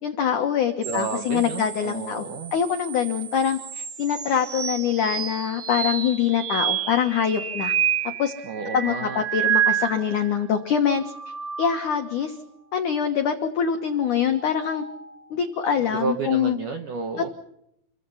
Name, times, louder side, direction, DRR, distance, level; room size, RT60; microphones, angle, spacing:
voice 1, 0.0-2.2 2.5-7.7 8.2-8.3 8.7-11.0 11.6-12.4 12.7-14.8 15.3-16.6, left 8 dB, 80° left, 6 dB, 1.8 m, -24 dB
sound 1, 0.8-10.4 10.8-12.2 14.0-15.2, right 9 dB, 55° right, 4.2 m, -30 dB
voice 2, 0.8-2.5 8.4-9.2 15.8-17.3, right 4 dB, 75° right, 6 dB, 1.9 m, -31 dB
29.0 x 23.5 x 5.7 m, 0.78 s
omnidirectional pair, 5.9 m